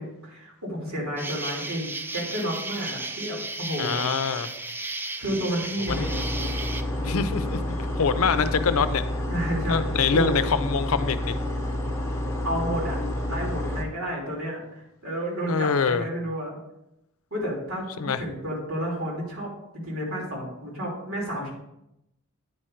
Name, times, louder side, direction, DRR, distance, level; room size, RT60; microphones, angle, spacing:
voice 1, 0.0-4.1 5.2-6.2 9.3-9.8 10.1-10.4 12.4-13.0 13.3-16.6 17.3-19.5 19.8-21.5, equal, 75° right, -3 dB, 3.1 m, -31 dB
Insect, 1.2-6.8, right 2 dB, 10° right, 0.3 m, -34 dB
voice 2, 3.8-4.5 5.9-6.1 7.0-9.0 9.7-11.4 15.5-16.1 18.0-18.2, left 5 dB, 75° left, 11 dB, 0.5 m, -25 dB
sound 1, 5.9-13.8, left 1 dB, 15° left, 0.9 m, -29 dB
9.5 x 4.4 x 5.0 m, 0.84 s
head